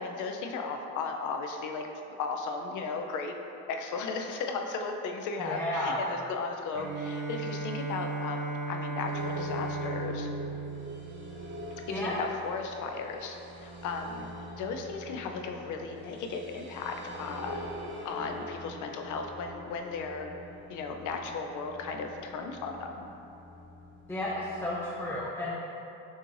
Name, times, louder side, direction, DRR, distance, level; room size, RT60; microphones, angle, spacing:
voice 1, 0.0-1.9 2.2-3.3 3.7-10.3 11.9-14.3 14.6-17.6 18.0-20.3 20.7-23.0, left 4 dB, 85° left, 4 dB, 0.5 m, -36 dB
voice 2, 5.4-6.1 11.9-12.1 24.1-25.7, left 1 dB, 10° left, -8 dB, 0.6 m, -32 dB
Bowed string instrument, 6.7-12.0, right 3 dB, 90° right, 0.5 m, -36 dB
sound 1, 9.0-25.2, equal, 40° right, 1.0 m, -44 dB
6.2 x 3.1 x 2.5 m, 2.8 s
cardioid pair, 90°, 30 cm